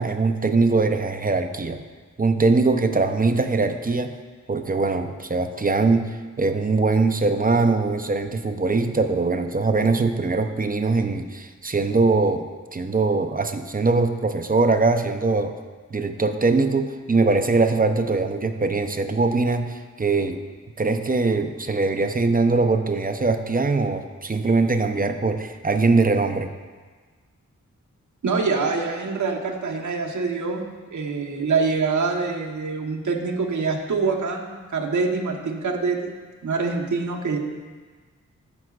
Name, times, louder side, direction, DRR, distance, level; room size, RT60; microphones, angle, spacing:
voice 1, 0.0-1.8 2.2-4.2 4.5-15.5 15.9-20.4 20.8-26.5, right 3 dB, 30° right, 7 dB, 0.6 m, -22 dB
voice 2, 28.2-36.2 36.4-37.4, right 4 dB, 70° right, 1 dB, 1.1 m, -25 dB
14.0 x 5.9 x 2.4 m, 1.4 s
cardioid pair, 55°, 31 cm